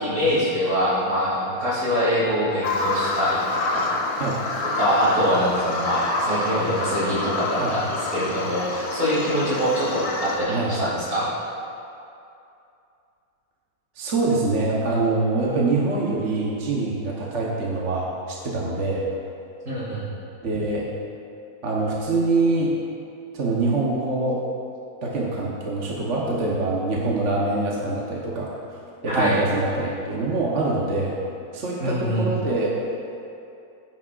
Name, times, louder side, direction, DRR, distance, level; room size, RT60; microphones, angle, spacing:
voice 1, 0.0-3.8 4.7-7.8 8.1-11.3 19.6-20.1 29.1-29.3 31.8-32.3, equal, 70° right, -9 dB, 3.2 m, -24 dB
Bird vocalization bird call bird song, 2.6-10.4, left 2 dB, 70° left, 1.6 m, -27 dB
voice 2, 14.0-19.0 20.4-20.8 21.6-22.7 23.3-24.4 25.0-28.5 29.0-31.2 31.5-32.7, right 3 dB, 50° right, -4 dB, 1.4 m, -24 dB
15.5 x 9.8 x 2.5 m, 2.6 s
omnidirectional pair, 1.6 m